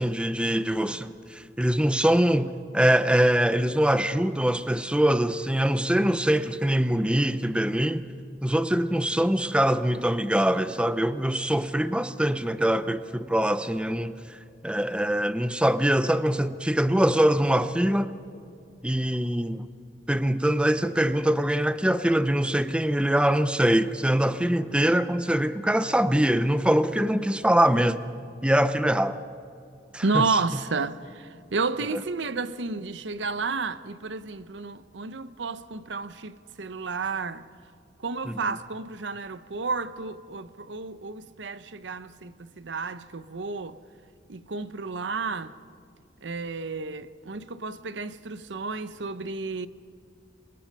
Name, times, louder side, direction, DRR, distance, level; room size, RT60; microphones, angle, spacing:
voice 1, 0.0-8.0 8.4-14.2 14.6-18.1 18.8-19.7 20.1-28.0 28.4-29.2 29.9-30.3 31.9-32.0 38.3-38.4, right 1 dB, 5° right, 0.6 m, -23 dB
voice 2, 30.0-37.4 38.0-43.8 44.3-45.5 46.2-49.7, right 4 dB, 85° right, 0.8 m, -31 dB
28.0 x 23.0 x 5.4 m
head